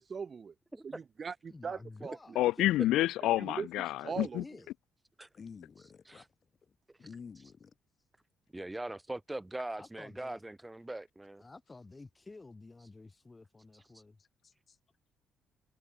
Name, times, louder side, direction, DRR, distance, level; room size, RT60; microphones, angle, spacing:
voice 1, 0.1-0.5 0.8-2.2 3.4-3.7 4.0-4.4, right 6 dB, 40° right, 1.3 m, -39 dB
voice 2, 1.5-2.5 4.0-4.7 9.8-10.4 11.4-14.2, left 3 dB, 20° left, 4.8 m, -51 dB
voice 3, 2.4-4.4, left 15 dB, 90° left, 0.3 m, -28 dB
voice 4, 5.3-6.2 7.0-7.7 14.2-14.8, left 6 dB, 40° left, 6.1 m, -50 dB
voice 5, 8.5-11.4, right 1 dB, 10° right, 2.0 m, -41 dB
cardioid pair, 90°, 0 cm